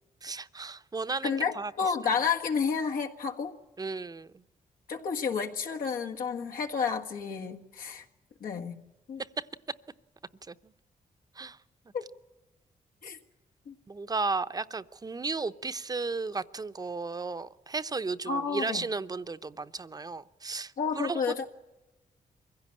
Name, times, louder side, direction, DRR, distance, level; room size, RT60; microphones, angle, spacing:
voice 1, 0.2-1.9 3.8-4.4 9.2-9.5 10.4-10.7 11.3-11.6 13.9-21.2, right 4 dB, 25° right, 12 dB, 0.7 m, -34 dB
voice 2, 1.2-3.5 4.9-8.0 8.4-8.8 9.1-9.2 11.9-12.0 13.0-13.2 13.6-13.7 18.3-18.8 20.8-21.5, left 6 dB, 80° left, 2 dB, 1.6 m, -30 dB
23.5 x 16.0 x 8.7 m, 1.1 s
cardioid pair, 80°, 14 cm